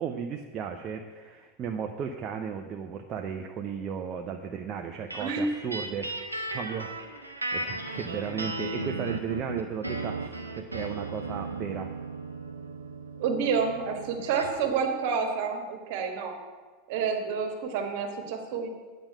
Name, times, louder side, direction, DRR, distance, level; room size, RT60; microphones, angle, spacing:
voice 1, 0.0-11.9, right 7 dB, 35° right, 3 dB, 0.6 m, -35 dB
sound 1, 5.1-14.6, right 2 dB, 85° right, 0.7 m, -36 dB
voice 2, 5.2-5.6 13.2-16.4 16.9-18.7, right 5 dB, 50° right, 4 dB, 1.4 m, -29 dB
8.8 x 5.2 x 7.6 m, 1.4 s
figure-of-eight pair, 85°, 0 cm